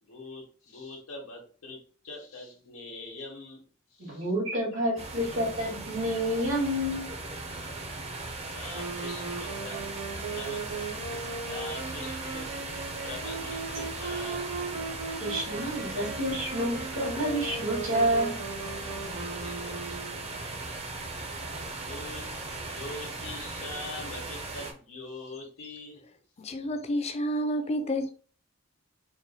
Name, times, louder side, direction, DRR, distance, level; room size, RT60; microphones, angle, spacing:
voice 1, 0.0-3.6 3.9-4.3 5.2-5.7 8.5-9.8 10.3-10.6 11.5-14.5 19.4-20.0 21.7-22.2 22.6-26.0, left 2 dB, 85° left, 1.1 m, -43 dB
voice 2, 4.0-7.1 15.2-18.4, equal, 75° right, 2.1 m, -29 dB
sound 1, 5.0-24.7, right 2 dB, 30° right, 0.6 m, -38 dB
Wind instrument woodwind instrument, 8.7-20.4, right 4 dB, 50° right, 1.0 m, -38 dB
voice 3, 26.4-28.1, equal, 30° left, 0.5 m, -29 dB
4.0 x 2.2 x 4.1 m
head